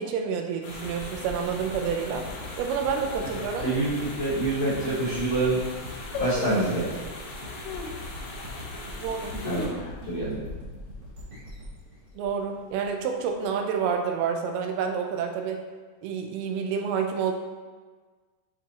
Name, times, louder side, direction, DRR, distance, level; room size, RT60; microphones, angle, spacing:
voice 1, 0.0-2.3 2.6-3.7 9.0-9.3 12.2-15.6 16.0-17.3, right 6 dB, 85° right, 4 dB, 2.5 m, -28 dB
sound 1, 0.6-9.7, left 2 dB, 70° left, 2.4 m, -41 dB
sound 2, 0.7-13.3, left 1 dB, 55° right, 1.2 m, -42 dB
voice 2, 3.6-5.6 6.2-6.9 9.4-9.6 10.0-10.4, right 2 dB, 50° left, -10 dB, 2.9 m, -26 dB
sound 3, 5.2-5.5 6.1-6.9 7.6-8.0 8.6-8.7 9.2-10.3 10.6-10.7 11.0-11.4 11.8-12.2 12.8-13.6 13.8-13.9, left 3 dB, 85° left, 1.8 m, -34 dB
9.6 x 4.1 x 2.9 m, 1.4 s
omnidirectional pair, 4.5 m